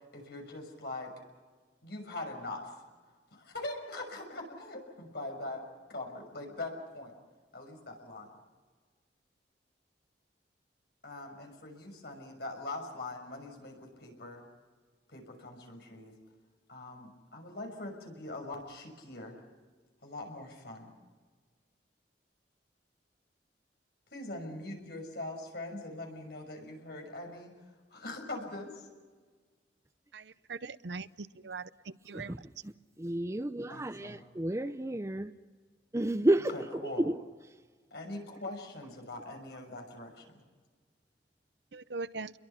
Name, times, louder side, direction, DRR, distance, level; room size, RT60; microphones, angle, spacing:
voice 1, 0.1-1.1 1.8-2.7 3.3-5.6 5.9-7.1 7.5-8.3 11.0-14.4 15.1-16.1 16.7-19.4 20.0-20.9 24.1-27.5 27.9-28.9 33.7-34.3 36.5-37.1 37.9-40.4, left 2 dB, 65° left, 6.2 m, -42 dB
voice 2, 30.1-31.7 32.1-32.3 41.7-42.3, right 4 dB, 75° right, 0.7 m, -41 dB
voice 3, 32.1-35.3 35.9-37.2, right 1 dB, 15° right, 0.6 m, -31 dB
29.0 x 22.5 x 5.7 m
head